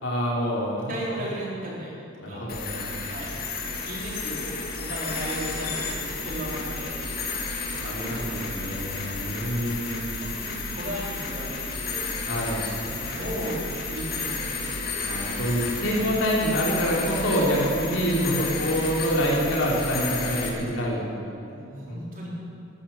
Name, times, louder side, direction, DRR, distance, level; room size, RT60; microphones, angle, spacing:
voice 1, 0.0-0.9 2.2-3.1 7.8-10.1 12.3-12.6 15.1-21.1 21.9-22.0, equal, 65° left, -3 dB, 3.6 m, -26 dB
voice 2, 0.9-2.5 3.1-7.6 8.0-8.8 9.4-9.7 10.2-12.2 12.8-15.0 15.9-16.1 20.3-20.4 21.4-22.3, right 1 dB, 45° right, -5 dB, 4.2 m, -36 dB
sound 1, 2.5-20.5, left 4 dB, 50° left, 2.0 m, -32 dB
14.5 x 11.5 x 7.2 m, 2.8 s
head